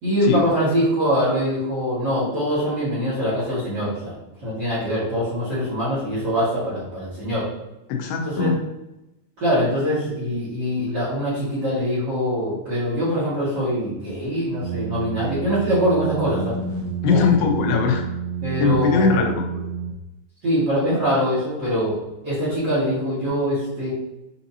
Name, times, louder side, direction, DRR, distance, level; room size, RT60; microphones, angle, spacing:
voice 1, 0.0-4.1 4.4-7.5 8.2-8.5 9.4-16.5 17.1-17.2 18.4-19.6 20.4-23.9, equal, 70° right, -11 dB, 0.9 m, -23 dB
voice 2, 7.9-8.6 17.0-18.0 18.6-19.2, left 5 dB, 85° left, 3 dB, 2.6 m, -20 dB
sound 1, 14.6-20.0, right 6 dB, 85° right, 2.7 m, -29 dB
7.0 x 2.7 x 2.7 m, 0.95 s
omnidirectional pair, 4.6 m